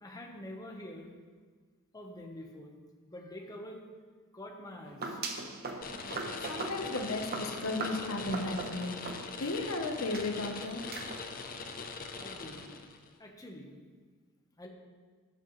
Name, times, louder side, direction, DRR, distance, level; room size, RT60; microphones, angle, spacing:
voice 1, 0.0-1.1 1.9-2.8 3.1-3.8 4.3-5.2 9.4-9.7 12.2-12.8 13.2-13.7 14.6-14.7, left 1 dB, 15° left, 1 dB, 1.1 m, -46 dB
sound 1, 4.8-9.7 10.1-10.3 10.9-11.3, right 3 dB, 45° right, 0.9 m, -40 dB
sound 2, 5.8-13.1, left 4 dB, 45° left, 0.7 m, -42 dB
voice 2, 6.4-8.9 9.4-10.8, left 2 dB, 70° left, 4 dB, 0.9 m, -35 dB
12.5 x 7.6 x 3.2 m, 1.5 s
head